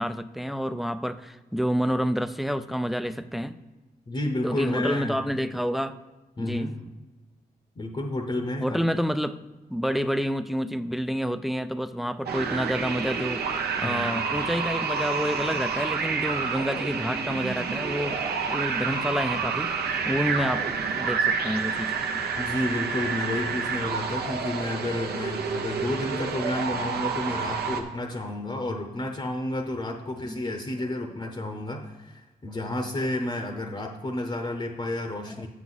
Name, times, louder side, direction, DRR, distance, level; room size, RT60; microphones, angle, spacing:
voice 1, 0.0-3.6 4.4-6.0 6.4-6.7 8.6-9.4 9.7-13.4 13.8-18.2 18.5-20.7 20.9-22.3 30.2-30.5 31.5-31.7 35.3-35.4, equal, ahead, 12 dB, 0.3 m, -29 dB
voice 2, 4.1-5.2 6.4-6.8 7.8-8.8 13.8-14.1 22.4-35.5, left 1 dB, 30° left, 3 dB, 0.8 m, -31 dB
sound 1, 12.3-27.8, right 5 dB, 80° right, 0.8 m, -29 dB
7.5 x 7.0 x 4.0 m, 1.2 s
cardioid pair, 85°, 16 cm